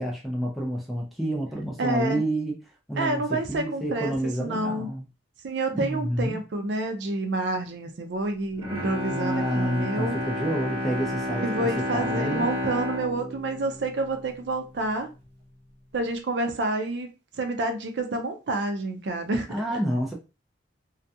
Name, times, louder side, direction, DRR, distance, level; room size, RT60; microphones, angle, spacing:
voice 1, 0.0-2.6 2.9-5.0 5.7-6.4 9.1-12.5 19.5-20.1, right 1 dB, ahead, 0.4 m, -29 dB
voice 2, 1.8-2.2 3.0-4.9 5.4-10.2 11.4-15.1 15.9-17.1 17.4-19.5, right 2 dB, 60° right, 0.4 m, -28 dB
Bowed string instrument, 8.5-14.8 15.2-15.3, left 1 dB, 30° right, 0.9 m, -31 dB
2.3 x 2.2 x 2.7 m
head